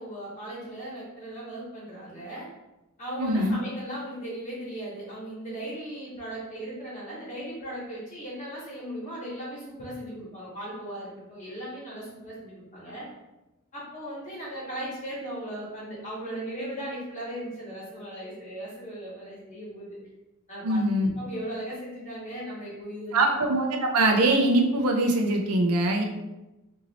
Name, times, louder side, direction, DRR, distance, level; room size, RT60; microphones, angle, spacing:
voice 1, 0.0-2.5 3.0-13.1 13.7-20.0 20.5-20.8 21.1-23.3, right 1 dB, 35° left, -7 dB, 1.4 m, -37 dB
voice 2, 3.2-3.6 20.6-21.1 23.1-26.0, right 1 dB, 85° right, 2 dB, 0.5 m, -23 dB
2.9 x 2.7 x 2.8 m, 1.0 s
head